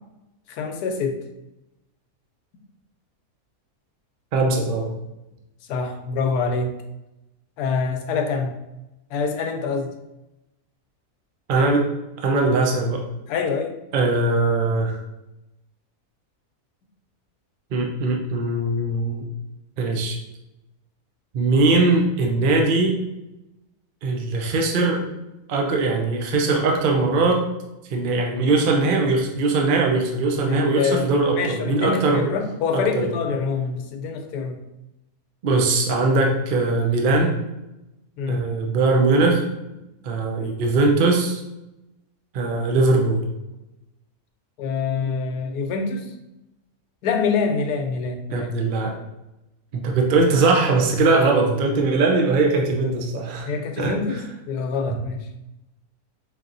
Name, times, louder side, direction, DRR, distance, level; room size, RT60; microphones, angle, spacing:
voice 1, 0.5-1.2 5.7-6.8 7.6-8.5 9.1-9.9 13.3-13.7 30.5-34.6 38.2-38.5 44.6-46.1 47.0-48.5 53.5-55.3, left 5 dB, 85° left, 5 dB, 1.1 m, -25 dB
voice 2, 4.3-4.9 11.5-11.8 12.2-13.0 13.9-15.0 17.7-19.3 19.8-20.2 21.3-23.0 24.0-25.0 25.5-27.4 27.9-32.3 32.7-33.1 35.4-37.3 38.3-39.4 40.0-41.4 42.3-43.2 48.3-48.9 49.7-53.5 53.8-54.0, right 3 dB, 65° right, 1 dB, 0.5 m, -20 dB
5.0 x 2.9 x 2.5 m, 0.94 s
omnidirectional pair, 1.7 m